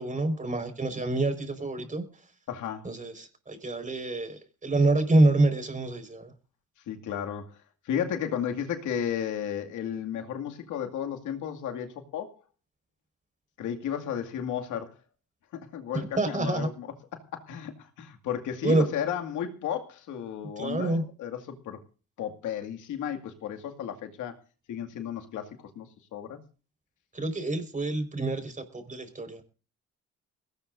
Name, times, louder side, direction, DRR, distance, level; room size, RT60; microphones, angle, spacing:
voice 1, 0.0-2.0 2.8-6.3 15.9-16.7 18.6-18.8 20.6-21.0 27.1-28.6 28.9-29.4, right 2 dB, 25° right, 4.7 m, -26 dB
voice 2, 2.5-2.9 6.9-7.6 7.8-12.3 13.6-14.9 15.5-21.8 22.2-24.3 24.7-25.9 26.1-26.4, left 9 dB, 85° left, 2.2 m, -33 dB
21.5 x 18.0 x 2.6 m
cardioid pair, 90°, 30 cm